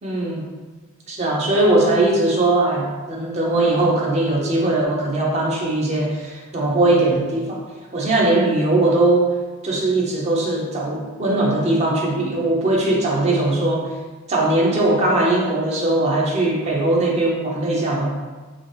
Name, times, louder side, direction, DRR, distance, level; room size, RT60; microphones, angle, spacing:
voice 1, 0.0-0.4 1.1-7.6 7.9-9.3 9.6-13.9 14.3-18.2, right 2 dB, 30° right, -2 dB, 0.4 m, -20 dB
2.8 x 2.5 x 3.1 m, 1.3 s
head